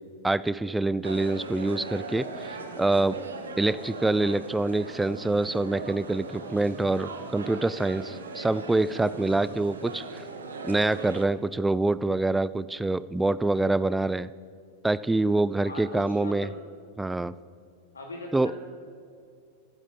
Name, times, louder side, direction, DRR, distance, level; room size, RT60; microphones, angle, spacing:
voice 1, 0.2-2.3 2.8-3.2 3.6-10.0 10.6-14.3 14.8-16.5 17.0-17.3 18.3-18.5, right 2 dB, 5° right, 17 dB, 0.3 m, -25 dB
sound 1, 1.0-11.3, right 3 dB, 70° right, 1.2 m, -39 dB
voice 2, 15.6-16.6 17.9-18.5, left 1 dB, 75° left, 1 dB, 2.8 m, -40 dB
23.5 x 11.5 x 3.4 m, 2.4 s
figure-of-eight pair, 90°, 0 cm